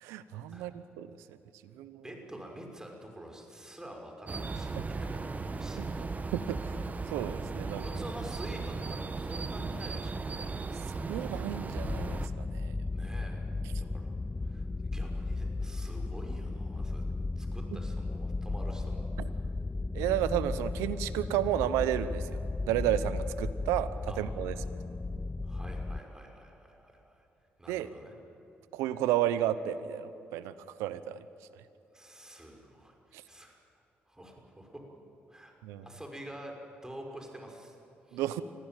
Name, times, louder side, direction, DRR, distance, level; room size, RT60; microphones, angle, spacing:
voice 1, 0.0-1.1 1.8-2.0 5.8-5.9 6.3-6.6 7.1-7.8 11.1-12.7 19.2-19.3 19.9-22.4 22.7-23.9 24.2-24.5 27.7-27.9 28.7-30.5 30.8-31.2 35.6-35.8 38.1-38.4, right 12 dB, 85° right, 14 dB, 0.9 m, -32 dB
voice 2, 2.0-4.7 5.0-5.8 7.8-10.3 12.9-13.4 13.8-14.1 14.4-17.0 17.4-19.1 24.1-24.2 25.4-27.3 27.6-28.1 31.9-33.6 34.1-34.8 35.3-35.5 35.8-37.8 38.1-38.2, right 1 dB, 15° right, 2 dB, 5.9 m, -47 dB
sound 1, 4.3-12.3, right 3 dB, 35° right, 1.3 m, -36 dB
sound 2, 11.8-26.0, left 3 dB, 20° left, 0.7 m, -35 dB
24.5 x 16.0 x 9.2 m, 3.0 s
supercardioid pair, 55°, 5 cm